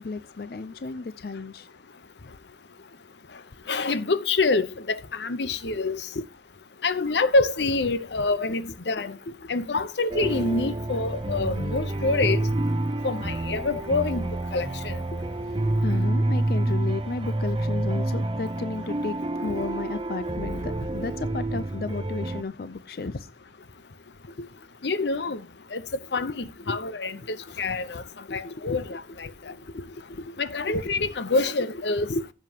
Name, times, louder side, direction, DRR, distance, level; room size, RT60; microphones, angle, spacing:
voice 1, 0.0-1.7 5.6-5.8 6.1-6.3 8.5-8.6 9.3-9.5 15.1-15.2 15.6-19.2 19.4-23.3 24.3-24.5 26.2-26.3 26.6-26.8 28.3-29.0 29.3-30.4 30.7-30.9 32.1-32.2, left 3 dB, 55° left, 0.5 m, -34 dB
voice 2, 3.7-6.0 6.8-9.2 9.5-12.4 13.0-15.0 24.8-25.4 25.7-25.8 26.1-28.0 28.3-29.3 30.4-32.1, left 3 dB, 85° left, 0.8 m, -26 dB
sound 1, 10.1-22.4, right 1 dB, 30° right, 0.6 m, -28 dB
15.5 x 7.6 x 2.9 m
head